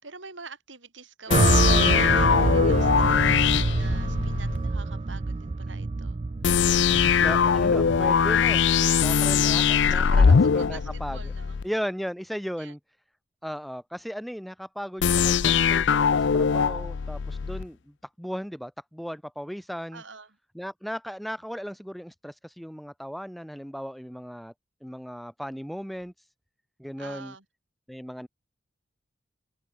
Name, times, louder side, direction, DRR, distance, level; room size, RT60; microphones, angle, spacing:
voice 1, 0.0-6.2 9.9-11.6 12.6-12.7 19.9-20.4 27.0-27.4, right 4 dB, 75° right, 4.9 m, -45 dB
sound 1, 1.3-4.6 6.4-11.7 15.0-17.7, left 6 dB, 70° left, 0.5 m, -21 dB
sound 2, 1.3-9.6, right 3 dB, 30° right, 0.4 m, -26 dB
voice 2, 2.6-3.0 6.9-8.6 9.0-11.2 11.6-12.8 13.4-20.0 20.5-24.5 24.8-26.1 26.8-27.3 27.9-28.3, equal, ahead, 3.1 m, -36 dB
open air
head